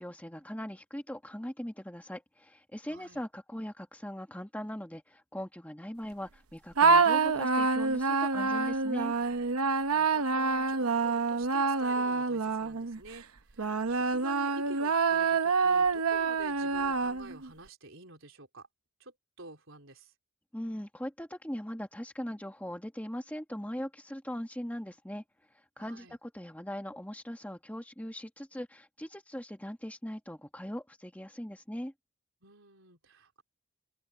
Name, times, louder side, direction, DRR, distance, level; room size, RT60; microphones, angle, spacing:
voice 1, 0.0-9.1 20.5-25.2 25.8-31.9, equal, 5° left, 1.6 m, -40 dB
voice 2, 2.9-3.2 9.9-18.7 19.0-20.1 25.8-26.2 32.4-33.4, right 2 dB, 60° right, 4.1 m, -49 dB
sound 1, 6.8-13.0 13.6-17.5, right 4 dB, 85° right, 0.9 m, -27 dB
open air
head